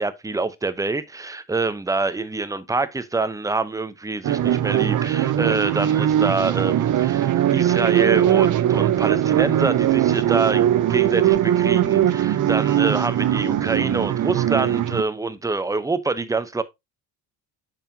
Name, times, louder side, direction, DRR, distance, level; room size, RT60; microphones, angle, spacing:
voice 1, 0.0-16.6, right 3 dB, 10° right, 0.7 m, -26 dB
sound 1, 4.2-15.0, right 11 dB, 50° right, 0.6 m, -20 dB
9.1 x 5.6 x 2.7 m
cardioid pair, 125°, 41 cm